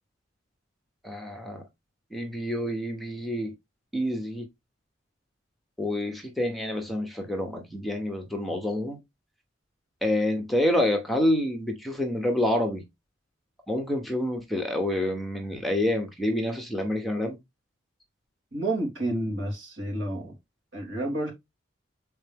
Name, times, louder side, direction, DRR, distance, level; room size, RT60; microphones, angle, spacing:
voice 1, 1.0-1.6 2.1-3.5 3.9-4.5 5.8-9.0 10.0-12.8 13.7-17.4, left 1 dB, ahead, 1.0 m, -27 dB
voice 2, 18.5-20.3 20.7-21.3, right 1 dB, 65° right, 3.0 m, -30 dB
7.2 x 4.5 x 3.5 m
head